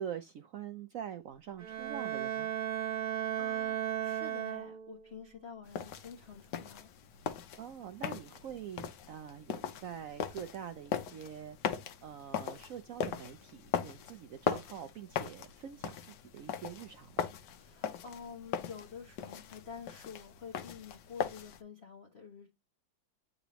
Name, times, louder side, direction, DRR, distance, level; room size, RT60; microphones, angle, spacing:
voice 1, 0.0-2.5 7.6-11.6 12.0-17.2, right 9 dB, 80° right, 0.7 m, -44 dB
Bowed string instrument, 1.6-5.1, right 11 dB, 50° right, 1.3 m, -35 dB
voice 2, 3.4-6.9 17.5-22.5, left 6 dB, 40° left, 1.0 m, -49 dB
sound 1, 5.7-21.6, left 8 dB, 70° left, 1.3 m, -39 dB
8.5 x 3.9 x 3.0 m
omnidirectional pair, 2.1 m